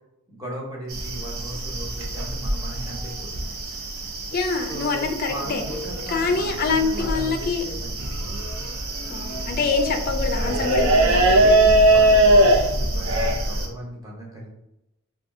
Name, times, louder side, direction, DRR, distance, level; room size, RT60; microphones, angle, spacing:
voice 1, 0.3-3.6 4.7-8.2 11.3-14.5, right 1 dB, 15° right, -3 dB, 0.8 m, -37 dB
sound 1, 0.9-13.7, right 1 dB, 75° right, 0.6 m, -22 dB
voice 2, 4.3-5.6 6.1-7.6 9.1-11.4, left 4 dB, 45° left, 5 dB, 0.4 m, -25 dB
2.6 x 2.3 x 3.7 m, 0.87 s
head